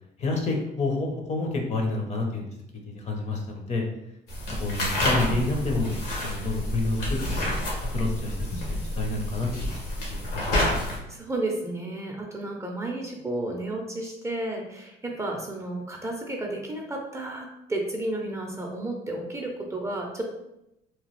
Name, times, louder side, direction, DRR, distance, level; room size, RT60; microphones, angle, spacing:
voice 1, 0.2-2.5 2.9-3.8 4.6-7.5 7.9-9.7 10.3-11.0, left 2 dB, 40° left, 1 dB, 0.7 m, -29 dB
sound 1, 4.3-11.0, left 1 dB, 75° left, 1.1 m, -29 dB
voice 2, 11.1-20.2, right 2 dB, 15° right, 0 dB, 0.5 m, -32 dB
2.9 x 2.3 x 3.1 m, 0.85 s
cardioid pair, 110°, 17 cm